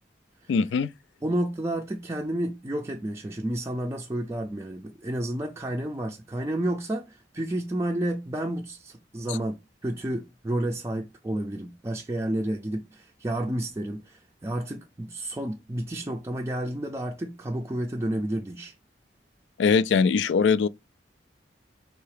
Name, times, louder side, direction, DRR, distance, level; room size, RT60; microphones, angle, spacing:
voice 1, 0.5-0.9 9.3-9.4 19.6-20.7, left 5 dB, 90° left, 0.3 m, -21 dB
voice 2, 1.2-18.7, right 1 dB, 15° right, 0.4 m, -31 dB
3.8 x 2.8 x 4.8 m
head